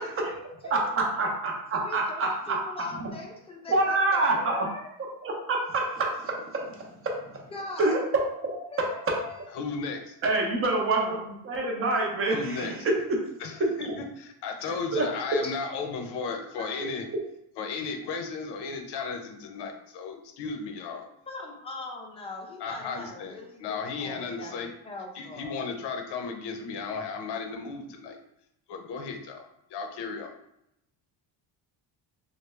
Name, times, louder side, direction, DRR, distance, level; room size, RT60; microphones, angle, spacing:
voice 1, 0.0-0.9 1.7-4.0 4.3-4.9 7.5-8.0 8.7-9.4 10.9-11.2 15.4-16.1 16.5-16.9 18.9-19.1 21.3-25.5, left 2 dB, 15° left, 0 dB, 0.5 m, -41 dB
voice 2, 0.7-2.6 3.7-4.7 5.2-7.5 7.8-9.3 10.2-13.3 13.8-13.9 14.7-15.1, right 2 dB, 25° right, 0 dB, 0.7 m, -27 dB
voice 3, 9.5-10.2 12.3-12.7 13.4-17.1 17.6-21.1 22.6-24.7 25.1-28.2 28.7-29.4 29.7-30.3, left 4 dB, 55° left, 4 dB, 0.7 m, -35 dB
3.3 x 2.2 x 3.2 m, 0.81 s
cardioid pair, 145°, 49 cm